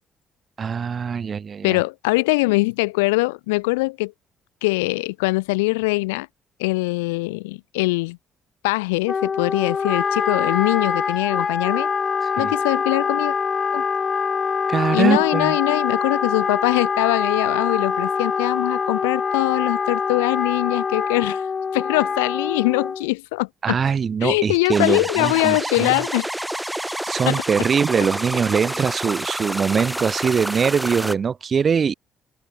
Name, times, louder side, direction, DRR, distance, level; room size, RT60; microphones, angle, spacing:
voice 1, 0.6-1.8 12.4-12.5 14.7-15.6 23.6-26.0 26.8-31.9, right 6 dB, 45° right, 1.2 m, -22 dB
voice 2, 1.6-4.1 4.6-6.3 6.6-8.2 8.6-11.9 12.4-13.3 13.7-13.8 14.9-21.4 21.7-23.8 24.2-26.3 27.3-27.4, left 24 dB, 80° left, 1.9 m, -22 dB
Wind instrument woodwind instrument, 9.1-23.1, left 5 dB, 40° left, 1.6 m, -24 dB
sound 1, 24.7-31.1, right 1 dB, 5° right, 1.5 m, -28 dB
hypercardioid pair, 45°, 0 cm